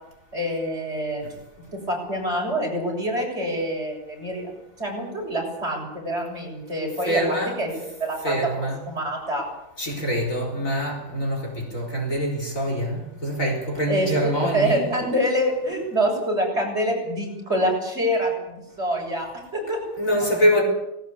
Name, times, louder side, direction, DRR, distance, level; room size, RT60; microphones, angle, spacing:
voice 1, 0.3-1.2 1.7-4.5 4.8-7.7 8.0-8.5 8.9-9.5 13.9-19.8, equal, 30° right, 7.5 m, -26 dB
voice 2, 7.0-7.6 8.2-8.8 9.8-14.9 20.0-20.6, equal, 40° left, 4.4 m, -25 dB
19.5 x 18.0 x 8.4 m
omnidirectional pair, 2.1 m